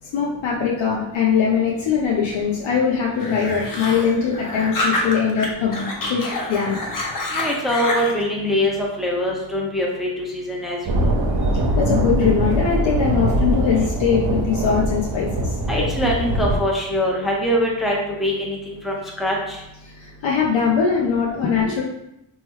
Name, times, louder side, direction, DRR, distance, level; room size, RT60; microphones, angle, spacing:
voice 1, 0.1-6.8 11.8-15.3 20.2-21.8, left 6 dB, 80° left, -3 dB, 0.6 m, -21 dB
sound 1, 3.2-5.5 5.7-8.2, left 2 dB, 45° left, 0.8 m, -27 dB
voice 2, 7.3-8.7 9.0-10.1 10.5-10.8 11.0-11.1 15.7-18.6 18.8-19.4, equal, ahead, -2 dB, 0.7 m, -22 dB
sound 2, 10.9-16.6, right 1 dB, 55° right, 0.7 m, -22 dB
3.0 x 2.2 x 3.0 m, 0.84 s
cardioid pair, 50°, 46 cm